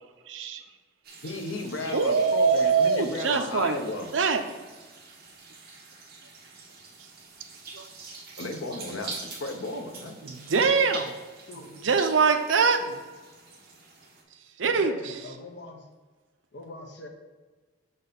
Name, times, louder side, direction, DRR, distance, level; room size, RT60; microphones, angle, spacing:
voice 1, 0.2-0.6 1.9-3.8 4.1-4.4 7.0-7.1 7.7-7.9 10.2-11.2 11.6-12.8 14.3-15.3, right 5 dB, 70° right, 7 dB, 0.6 m, -24 dB
sound 1, 1.0-14.2, right 4 dB, 50° right, 1.3 m, -45 dB
voice 2, 1.2-4.1 8.4-10.2, left 2 dB, 85° left, 4 dB, 0.9 m, -34 dB
voice 3, 14.6-15.8 16.5-17.1, left 2 dB, 60° left, 3 dB, 0.9 m, -42 dB
5.6 x 4.2 x 5.2 m, 1.3 s
head